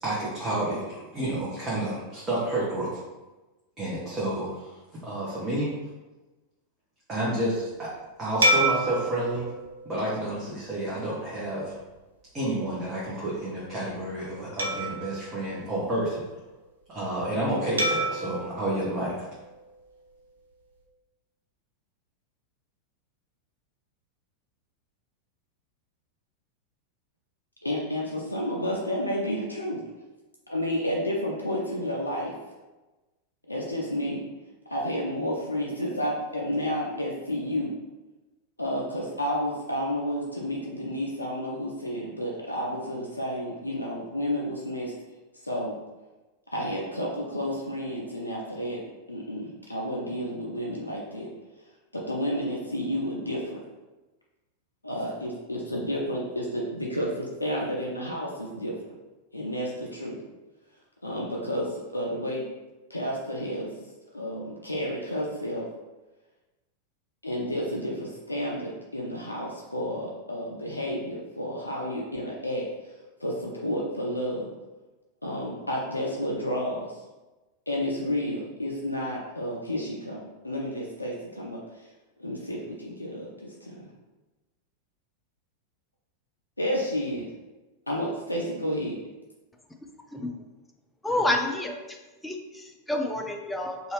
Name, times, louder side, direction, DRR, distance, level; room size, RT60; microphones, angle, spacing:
voice 1, 0.0-3.0 3.8-4.7 5.0-5.7 7.1-7.9 8.2-9.5 9.8-11.8 12.3-16.2 16.9-19.2, right 1 dB, 20° right, -8 dB, 0.8 m, -30 dB
sound 1, 8.4-11.1 11.7-11.9 14.6-16.4 17.8-20.1, right 1 dB, 75° right, 0.4 m, -30 dB
voice 2, 27.6-29.8 30.5-32.3 33.5-34.2 34.7-37.7 38.6-44.9 45.4-45.8 46.5-48.8 49.1-51.3 51.9-53.6 54.8-58.7 59.3-60.2 61.0-62.4 62.9-63.7 64.1-65.7 67.2-72.7 73.2-74.5 75.2-77.0 77.7-81.6 82.2-83.8 86.6-87.3 87.9-88.9, equal, 85° left, -3 dB, 0.4 m, -31 dB
voice 3, 91.0-92.0 92.2-93.9, left 1 dB, 5° left, 2 dB, 0.4 m, -29 dB
2.7 x 2.3 x 3.1 m, 1.1 s
figure-of-eight pair, 90°, 0 cm